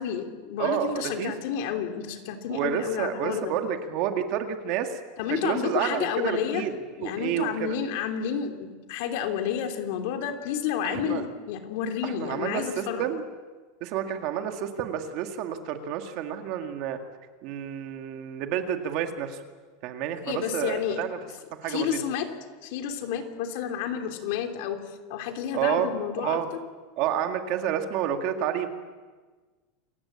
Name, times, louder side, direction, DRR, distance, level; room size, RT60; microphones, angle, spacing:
voice 1, 0.0-3.5 5.2-6.6 7.0-13.1 20.2-21.0 21.7-22.3 22.6-24.8 25.1-26.4, left 8 dB, 55° left, 4 dB, 3.1 m, -30 dB
voice 2, 0.6-1.3 2.5-5.0 5.3-7.8 10.8-11.2 12.0-13.2 13.8-17.0 17.4-19.4 19.8-21.2 21.6-22.0 25.5-25.9 26.2-26.5 27.0-28.7, right 9 dB, 45° right, 6 dB, 2.0 m, -29 dB
28.0 x 16.0 x 8.7 m, 1.4 s
supercardioid pair, 170°, 0 cm